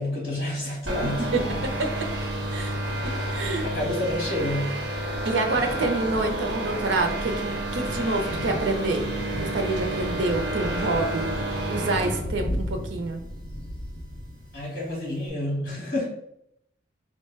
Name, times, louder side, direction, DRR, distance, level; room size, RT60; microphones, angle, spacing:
voice 1, 0.0-1.6 3.6-4.7 14.5-16.0, left 1 dB, 50° left, -4 dB, 1.4 m, -29 dB
sound 1, 0.9-12.2, right 1 dB, 65° right, 1.1 m, -30 dB
Thunder, 2.0-14.6, equal, 30° left, 0.4 m, -38 dB
voice 2, 2.5-2.8 3.3-3.7 5.2-9.1 9.3-13.2, right 2 dB, 85° right, 4 dB, 0.6 m, -27 dB
4.0 x 2.1 x 3.2 m, 0.76 s
head